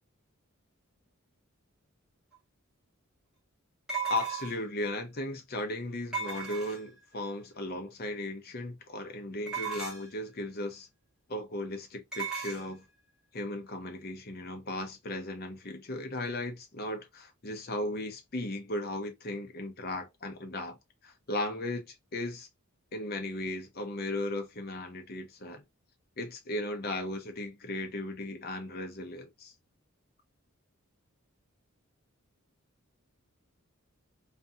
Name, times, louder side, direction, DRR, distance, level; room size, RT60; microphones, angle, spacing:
sound 1, 2.3-2.4 3.9-4.7 6.1-7.0 9.5-10.2 12.1-12.6, right 5 dB, 5° right, 1.3 m, -35 dB
voice 1, 4.1-10.9 11.3-12.8 13.3-20.8 21.0-22.5 22.9-25.6 26.2-29.5, left 1 dB, 45° left, 0.7 m, -36 dB
2.6 x 2.5 x 2.3 m
head